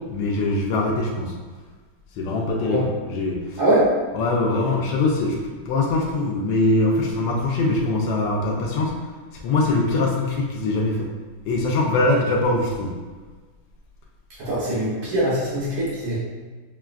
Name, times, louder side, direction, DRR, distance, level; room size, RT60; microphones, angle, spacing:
voice 1, 0.0-1.3 2.2-3.6 4.1-5.4 5.7-8.9 9.4-11.1 11.4-13.0, left 2 dB, 80° left, -1 dB, 1.2 m, -22 dB
voice 2, 3.6-3.9 14.4-16.2, right 1 dB, 90° right, -9 dB, 1.8 m, -22 dB
5.6 x 2.3 x 2.3 m, 1.4 s
omnidirectional pair, 2.0 m